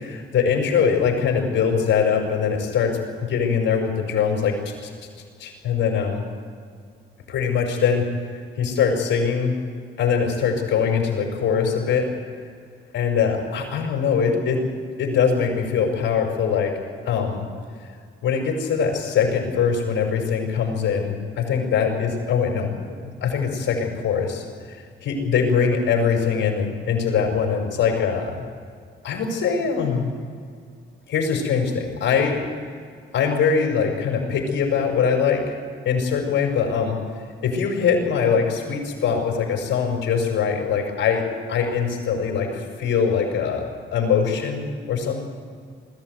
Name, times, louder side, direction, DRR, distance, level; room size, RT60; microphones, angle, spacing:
voice 1, 0.0-3.0 3.3-4.9 5.4-6.2 7.3-9.6 10.0-12.1 12.9-14.6 15.0-16.7 17.0-17.5 18.2-28.4 29.0-30.1 31.1-32.4 33.1-35.5 35.8-37.0 37.4-43.6 43.9-45.2, left 6 dB, 70° left, 3 dB, 5.6 m, -22 dB
21.0 x 15.0 x 9.3 m, 2.1 s
cardioid pair, 90°, 20 cm